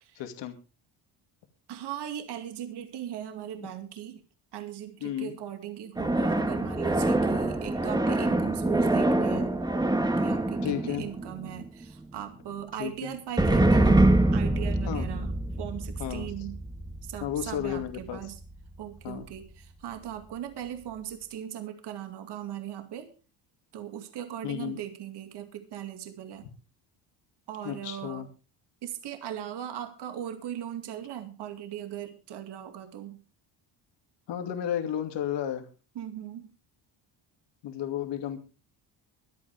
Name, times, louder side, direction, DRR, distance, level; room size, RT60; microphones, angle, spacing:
voice 1, 0.2-0.6 5.0-5.4 10.6-11.0 12.8-13.1 14.8-15.1 16.0-16.3 17.2-18.2 19.0-19.3 24.4-24.8 27.6-28.3 34.3-35.7 37.6-38.4, left 10 dB, 75° left, 6 dB, 2.6 m, -33 dB
voice 2, 1.7-4.2 4.5-9.5 10.2-14.1 14.3-15.3 15.6-16.6 17.0-18.4 18.8-23.1 23.7-26.5 27.5-28.3 28.8-33.2 35.9-36.5, right 10 dB, 65° right, 6 dB, 2.4 m, -39 dB
sound 1, 6.0-11.9 13.4-18.7, right 2 dB, 10° right, 1.6 m, -25 dB
24.0 x 8.8 x 3.6 m, 0.33 s
cardioid pair, 125°, 44 cm